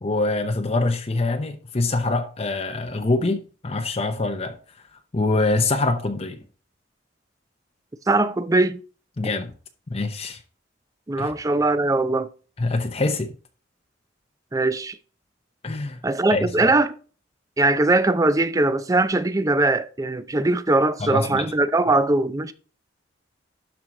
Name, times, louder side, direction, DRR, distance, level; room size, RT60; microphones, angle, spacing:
voice 1, 0.0-4.6 5.1-6.4 9.2-9.5 9.9-10.4 11.2-11.3 12.6-13.3 15.6-16.0 16.3-16.5 21.0-21.5, left 2 dB, 35° left, 0.7 m, -24 dB
voice 2, 8.1-8.8 11.1-12.3 14.5-15.0 16.0-17.0 17.6-22.5, right 2 dB, 20° right, 0.5 m, -21 dB
12.0 x 4.6 x 3.7 m
head